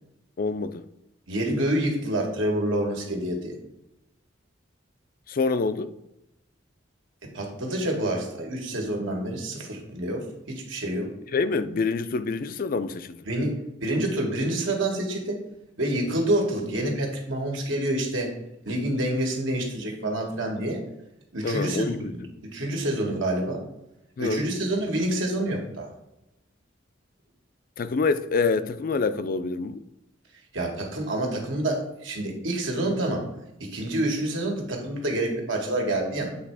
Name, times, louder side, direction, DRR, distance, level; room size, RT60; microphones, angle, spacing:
voice 1, 0.4-0.8 5.3-5.9 11.3-13.2 21.4-22.1 24.2-24.5 27.8-29.8, left 4 dB, 45° left, 0.4 m, -26 dB
voice 2, 1.3-3.6 7.3-11.1 13.3-15.4 15.8-18.3 18.6-20.8 21.3-23.6 24.2-25.9 30.5-33.2 33.6-36.4, right 1 dB, 85° right, 1.8 m, -27 dB
7.9 x 3.4 x 4.8 m
head